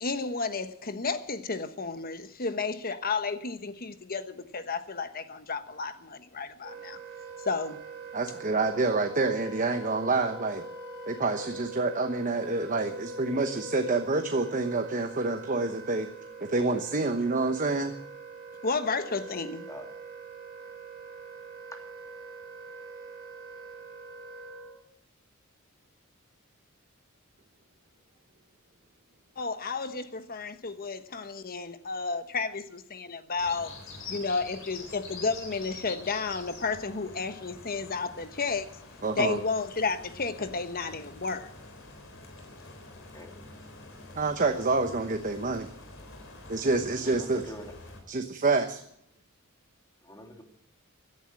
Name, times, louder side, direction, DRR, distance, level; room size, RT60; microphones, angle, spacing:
voice 1, 0.0-7.0 7.4-7.8 18.6-19.7 29.4-33.7 34.1-38.7 39.2-41.5, left 4 dB, 45° left, 1.2 m, -32 dB
Wind instrument woodwind instrument, 6.6-24.8, right 3 dB, 55° right, 3.5 m, -43 dB
voice 2, 8.1-10.6 11.1-16.1 16.4-17.9 39.0-39.4 44.2-45.7 46.5-47.4 48.1-48.8, right 3 dB, 40° right, 1.0 m, -27 dB
sound 1, 33.4-48.0, left 3 dB, 65° left, 3.8 m, -46 dB
voice 3, 46.9-47.7 50.0-50.4, equal, 15° left, 2.9 m, -45 dB
16.0 x 11.0 x 7.7 m
head